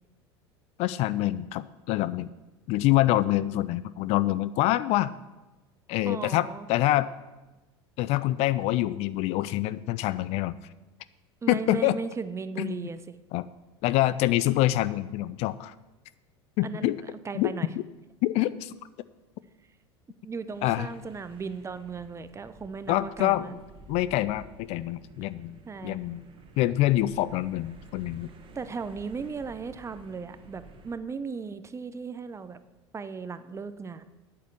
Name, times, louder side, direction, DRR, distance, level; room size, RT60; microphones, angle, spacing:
voice 1, 0.8-2.3 2.7-5.1 5.9-7.1 8.0-10.6 11.5-12.0 12.6-12.9 13.3-13.5 13.8-15.7 16.6-17.0 17.3-17.5 18.2-18.8 20.6-20.9 22.9-23.5 23.9-24.4 24.7-26.2 26.6-28.3, left 15 dB, 50° left, 16 dB, 0.4 m, -26 dB
voice 2, 6.0-6.7 11.4-13.2 16.6-17.7 20.2-23.6 25.7-26.0 28.5-32.6 32.9-34.1, right 5 dB, 20° right, 12 dB, 0.7 m, -36 dB
sound 1, 20.5-31.0, right 2 dB, 35° right, 1.6 m, -52 dB
8.6 x 8.1 x 6.9 m, 1.1 s
figure-of-eight pair, 75°, 14 cm